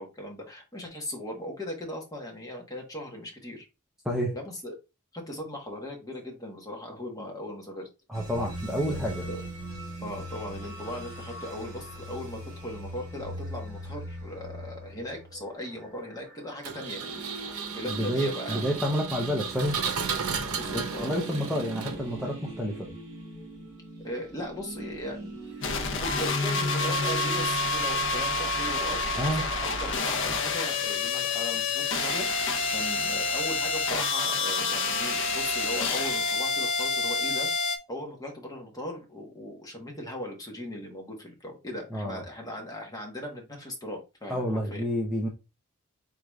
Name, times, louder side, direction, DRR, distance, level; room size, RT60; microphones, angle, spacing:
voice 1, 0.0-3.6 4.3-4.7 5.1-7.9 8.9-9.4 10.0-18.9 19.3-19.4 20.5-21.1 24.0-25.3 25.7-37.5 37.9-44.8, left 1 dB, 15° left, 1 dB, 1.2 m, -38 dB
voice 2, 8.1-9.3 17.9-19.8 21.0-22.9 29.2-29.4 41.9-42.2 44.3-45.3, equal, ahead, -1 dB, 0.6 m, -29 dB
sound 1, 8.1-27.5, right 2 dB, 20° right, 2.3 m, -41 dB
Engine, 16.6-22.3, right 6 dB, 85° right, 0.7 m, -34 dB
noisy feedbacks, 25.6-37.8, left 3 dB, 60° left, 0.8 m, -28 dB
4.8 x 3.8 x 2.3 m, 0.26 s
head